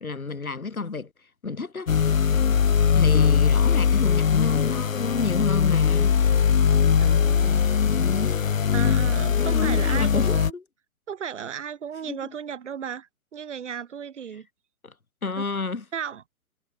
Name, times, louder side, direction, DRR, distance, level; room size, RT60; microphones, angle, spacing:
voice 1, 0.0-1.1 1.4-1.9 2.9-6.2 7.9-8.4 9.4-10.3 12.1-12.3 14.8-14.9 15.2-15.8, left 4 dB, 85° left, 1.7 m, -30 dB
sound 1, 1.9-10.5, left 7 dB, 65° left, 1.3 m, -20 dB
voice 2, 7.0-7.7 8.7-10.5 11.1-14.5 15.4-15.5 15.9-16.2, right 7 dB, 55° right, 5.2 m, -34 dB
figure-of-eight pair, 125°, 42 cm